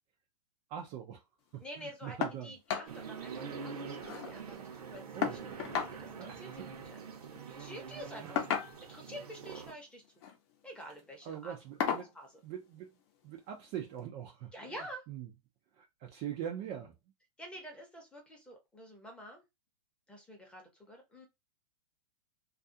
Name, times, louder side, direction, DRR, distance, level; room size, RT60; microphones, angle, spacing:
voice 1, 0.7-1.2 1.5-2.5 2.8-3.1 5.2-5.6 6.2-6.7 8.0-8.3 11.2-12.1 12.4-13.0 13.2-15.3 15.7-17.0, right 9 dB, 25° right, 0.4 m, -43 dB
voice 2, 1.6-2.2 2.4-7.0 7.5-8.5 8.9-10.0 10.6-11.5 11.9-12.3 14.5-15.0 17.4-19.4 20.1-21.3, equal, 5° left, 0.7 m, -48 dB
sound 1, 2.2-2.4 2.7-2.9 3.3-3.4 3.7-4.3 5.2-6.0 7.2-7.4 8.4-9.0 10.1-10.4 10.8-11.0 11.8-12.1 13.4-13.5 14.0-14.1, left 8 dB, 45° left, 0.7 m, -34 dB
sound 2, 2.9-9.7, right 6 dB, 75° right, 0.9 m, -45 dB
2.4 x 2.3 x 2.6 m
hypercardioid pair, 145°, 20 cm